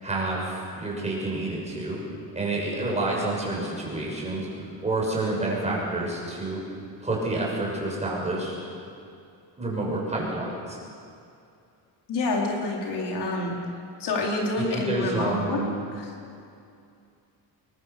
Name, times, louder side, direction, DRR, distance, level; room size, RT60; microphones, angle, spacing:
voice 1, 0.0-2.0 2.3-6.6 7.0-8.6 9.6-10.8 14.7-15.7, right 2 dB, 15° right, -3 dB, 6.5 m, -29 dB
voice 2, 12.1-13.6 14.0-16.1, left 2 dB, 65° left, -1 dB, 4.4 m, -28 dB
27.5 x 21.5 x 6.9 m, 2.5 s
cardioid pair, 175°, 43 cm